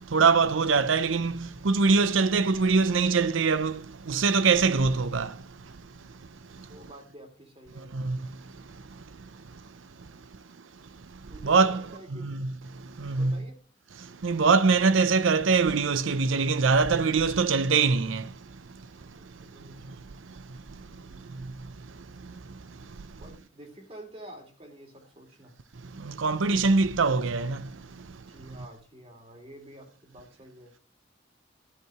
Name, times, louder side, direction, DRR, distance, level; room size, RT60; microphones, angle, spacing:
voice 1, 0.1-3.7 4.1-5.3 7.9-8.2 11.4-11.8 12.2-12.5 13.0-13.4 14.2-18.2 26.2-27.6, right 4 dB, 85° right, 0.6 m, -23 dB
voice 2, 6.7-7.9 11.3-12.3 13.2-13.6 19.0-21.6 23.1-25.5 28.3-30.8, right 1 dB, 30° right, 2.8 m, -49 dB
12.5 x 4.7 x 7.7 m
head